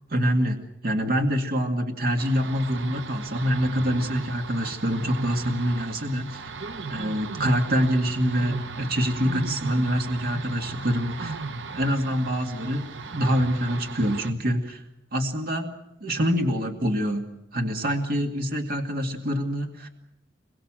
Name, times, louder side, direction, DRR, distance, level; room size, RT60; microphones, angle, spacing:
voice 1, 0.1-6.5 6.9-11.4 11.7-14.8 15.1-17.3 17.5-19.9, equal, 55° right, 4 dB, 2.2 m, -25 dB
sound 1, 2.2-14.3, right 4 dB, 70° right, 1.0 m, -36 dB
26.5 x 22.5 x 7.5 m, 0.85 s
head